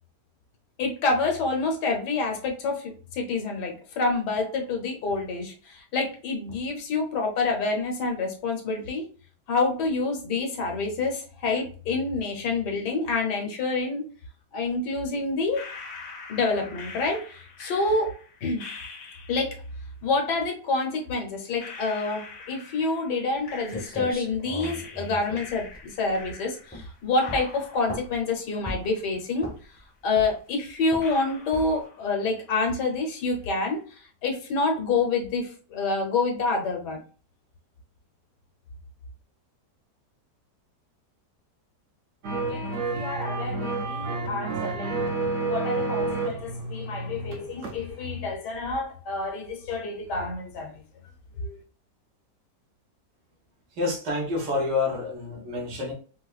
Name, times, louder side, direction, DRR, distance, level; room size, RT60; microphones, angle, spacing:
voice 1, 0.8-9.1 9.5-14.1 14.5-15.6 16.3-18.7 19.3-19.6 20.0-29.5 30.0-33.8 34.2-37.0 42.5-45.0 45.5-50.7 51.4-51.6, left 3 dB, 80° left, 2 dB, 1.4 m, -28 dB
sound 1, 15.5-19.7 20.8-20.9 21.6-24.3 24.6-26.9 27.2-29.3 29.6-29.7 30.3-30.4 31.0-32.3 32.6-33.1, left 4 dB, 65° left, 1.0 m, -44 dB
sound 2, 23.4-23.5 23.7-26.3 26.7-26.9 27.3-28.2 28.7-29.0 29.4-29.8 30.1-30.5 30.9-31.1 31.5-31.9, equal, 10° left, 0.5 m, -37 dB
sound 3, 42.2-47.8 48.1-48.2, right 3 dB, 60° right, 0.9 m, -30 dB
voice 2, 53.7-55.9, left 3 dB, 85° right, -2 dB, 1.8 m, -28 dB
4.2 x 2.2 x 2.4 m, 0.38 s
omnidirectional pair, 1.8 m